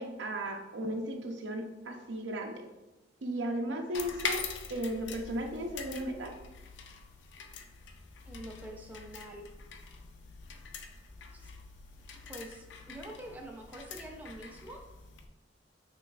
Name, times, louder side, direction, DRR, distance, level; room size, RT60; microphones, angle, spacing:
voice 1, 0.0-2.7 3.2-6.3, right 1 dB, 90° right, 3 dB, 0.6 m, -36 dB
sound 1, 3.9-15.3, left 5 dB, 80° left, 0.4 m, -44 dB
voice 2, 8.3-9.5 11.3-11.5 12.3-14.8, right 1 dB, 10° right, 1 dB, 0.5 m, -46 dB
5.5 x 3.1 x 2.4 m, 1.0 s
head